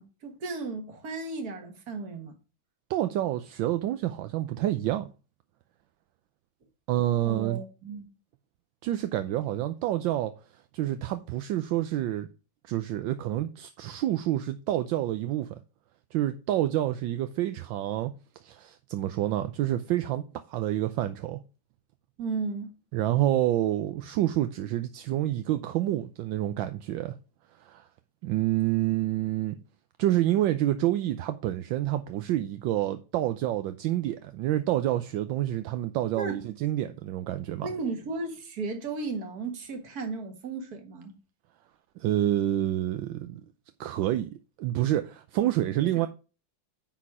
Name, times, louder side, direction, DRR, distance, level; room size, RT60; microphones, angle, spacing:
voice 1, 0.0-2.4 7.3-8.1 22.2-22.7 36.2-36.4 37.6-41.2 46.0-46.1, right 3 dB, 50° right, 1.9 m, -35 dB
voice 2, 2.9-5.1 6.9-7.6 8.8-10.3 10.7-12.3 12.6-15.6 16.1-18.1 18.4-20.2 20.5-21.4 22.9-27.1 27.6-27.8 28.2-29.6 30.0-37.7 42.0-43.4 43.8-46.1, right 13 dB, 75° right, 1.3 m, -28 dB
10.0 x 4.2 x 4.8 m
omnidirectional pair, 2.2 m